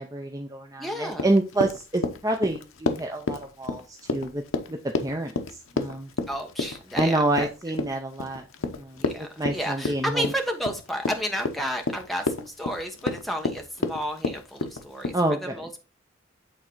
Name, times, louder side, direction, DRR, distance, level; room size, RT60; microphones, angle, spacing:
voice 1, 0.0-4.4 4.7-5.3 5.7-6.1 6.9-8.4 8.7-10.3 15.1-15.6, right 2 dB, 15° right, 3 dB, 0.6 m, -27 dB
voice 2, 0.8-1.3 6.3-7.5 9.0-15.1 15.4-15.8, equal, ahead, 3 dB, 1.0 m, -32 dB
Run, 1.1-15.2, left 3 dB, 80° left, 0.8 m, -30 dB
8.5 x 3.8 x 4.5 m, 0.30 s
head